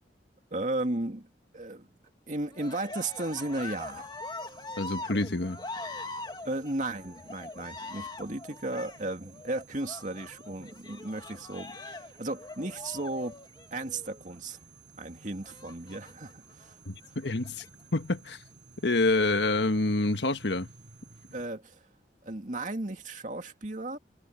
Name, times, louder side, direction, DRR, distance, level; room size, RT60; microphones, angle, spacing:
voice 1, 0.5-1.3 1.5-1.9 2.3-4.1 6.4-13.4 13.7-14.6 15.0-16.8 21.3-21.8 22.2-24.0, right 2 dB, 45° right, 2.4 m, -35 dB
Cheering, 2.5-14.2 15.4-16.3 17.0-17.7, left 2 dB, 25° left, 1.6 m, -43 dB
sound 1, 2.9-21.5, right 4 dB, 80° right, 6.5 m, -56 dB
voice 2, 4.8-5.6 16.8-17.7 17.9-18.4 18.8-20.7, left 2 dB, 80° left, 1.4 m, -27 dB
head